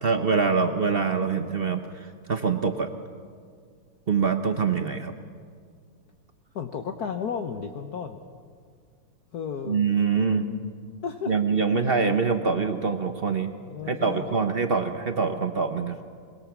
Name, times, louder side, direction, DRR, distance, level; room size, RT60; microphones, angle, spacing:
voice 1, 0.0-2.9 4.1-5.1 9.7-10.4 11.3-13.5 13.9-16.0, right 5 dB, 60° right, 7 dB, 0.5 m, -24 dB
voice 2, 6.5-8.2 9.3-9.8 11.0-11.3 13.7-14.5, left 6 dB, 55° left, 5 dB, 1.3 m, -33 dB
22.5 x 22.0 x 7.3 m, 2.1 s
omnidirectional pair, 2.4 m